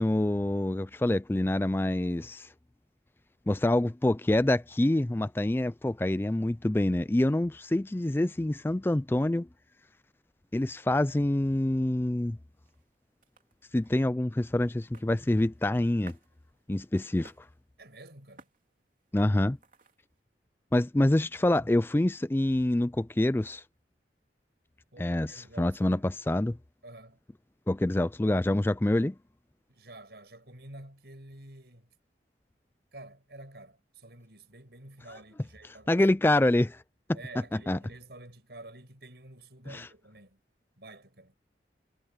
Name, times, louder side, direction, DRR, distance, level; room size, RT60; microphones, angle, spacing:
voice 1, 0.0-2.5 3.5-9.5 10.5-12.4 13.7-16.2 16.7-17.5 19.1-19.6 20.7-23.6 25.0-26.6 27.7-29.2 35.9-36.8 37.7-37.8 39.7-39.9, left 1 dB, 10° left, 0.3 m, -26 dB
sound 1, 12.1-20.2, right 3 dB, 45° right, 3.4 m, -61 dB
voice 2, 17.8-18.5 24.9-26.0 26.8-27.2 29.7-31.9 32.9-36.1 37.1-40.4 40.8-41.4, right 2 dB, 65° right, 5.5 m, -49 dB
head